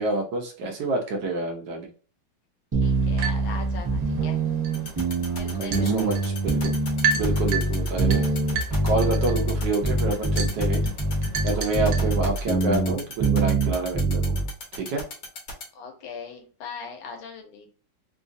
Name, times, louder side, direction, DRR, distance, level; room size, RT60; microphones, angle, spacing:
voice 1, 0.0-1.9 5.6-6.7 7.1-8.2 8.8-10.8 11.4-14.3 14.7-15.0, right 3 dB, 65° right, 1 dB, 1.2 m, -27 dB
voice 2, 2.7-4.4 5.3-6.1 11.8-12.1 15.7-17.7, left 5 dB, 75° left, 3 dB, 1.6 m, -40 dB
sound 1, 2.7-14.5, right 2 dB, 40° right, 0.3 m, -24 dB
sound 2, 2.8-12.6, right 5 dB, 90° right, 1.6 m, -34 dB
sound 3, 4.7-15.6, left 4 dB, 55° left, 1.2 m, -36 dB
3.8 x 2.4 x 2.6 m, 0.38 s
omnidirectional pair, 2.3 m